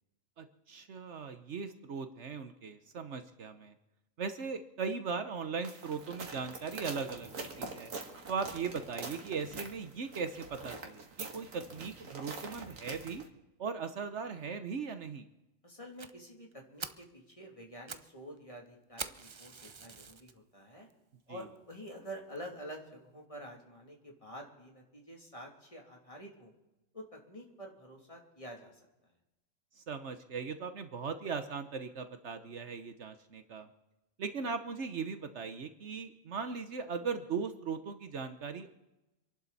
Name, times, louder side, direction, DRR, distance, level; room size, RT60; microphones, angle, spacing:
voice 1, 0.4-3.7 4.2-7.9 8.3-13.2 13.6-15.3 21.3-21.4 29.8-33.7 34.2-38.7, right 5 dB, 65° right, 9 dB, 1.2 m, -38 dB
sound 1, 5.6-13.3, right 3 dB, 85° right, 2.0 m, -45 dB
voice 2, 15.6-20.9 21.3-26.5 26.9-29.1, equal, 25° left, 0 dB, 2.9 m, -48 dB
Fire, 16.0-16.1 16.5-16.6 16.8-17.1 17.6-18.1 18.4-18.5 19.0-20.3 20.9-21.0 21.6-21.7 21.9-22.0 22.4-22.5, right 5 dB, 35° right, 0.5 m, -44 dB
26.5 x 11.5 x 4.1 m, 0.98 s
omnidirectional pair, 1.3 m